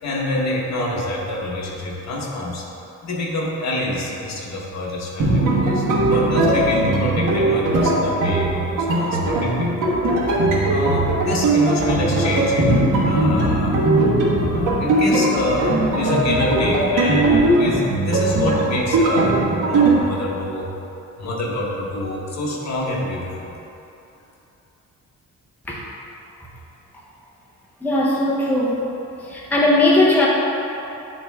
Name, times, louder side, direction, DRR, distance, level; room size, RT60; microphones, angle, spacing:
voice 1, 0.0-2.7 3.0-9.9 10.7-13.8 14.3-20.7 21.2-23.5, left 1 dB, 60° left, -2 dB, 1.1 m, -26 dB
sound 1, 5.2-20.0, right 2 dB, 85° right, 1.4 m, -19 dB
voice 2, 27.8-28.8 29.3-30.3, left 2 dB, 5° left, -5 dB, 0.7 m, -18 dB
9.8 x 4.1 x 3.5 m, 2.9 s
wide cardioid pair, 165°, 31 cm